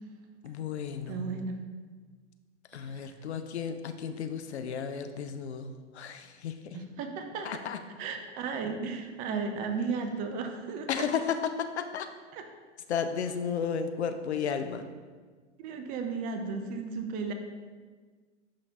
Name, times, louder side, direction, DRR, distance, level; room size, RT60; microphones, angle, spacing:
voice 1, 0.4-1.4 2.7-6.8 7.4-7.8 10.9-12.1 12.9-14.8, left 7 dB, 65° left, 8 dB, 0.5 m, -33 dB
voice 2, 1.1-1.6 2.8-3.1 6.7-7.5 8.0-10.9 12.3-12.4 15.6-17.3, right 5 dB, 25° right, 6 dB, 0.5 m, -34 dB
11.0 x 3.8 x 2.4 m, 1.5 s
figure-of-eight pair, 100°, 36 cm